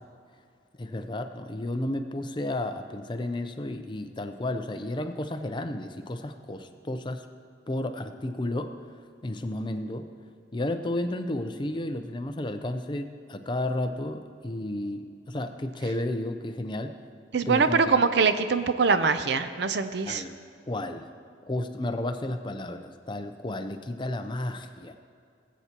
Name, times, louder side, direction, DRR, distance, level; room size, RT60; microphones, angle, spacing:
voice 1, 0.8-7.2 7.7-8.7 9.2-10.1 10.5-17.0 17.5-18.0 20.1-20.3 20.7-21.1 21.5-24.9, left 1 dB, 25° left, 7 dB, 0.5 m, -32 dB
voice 2, 17.3-20.2, right 5 dB, 60° right, 10 dB, 0.5 m, -23 dB
19.0 x 8.2 x 2.9 m, 2.3 s
head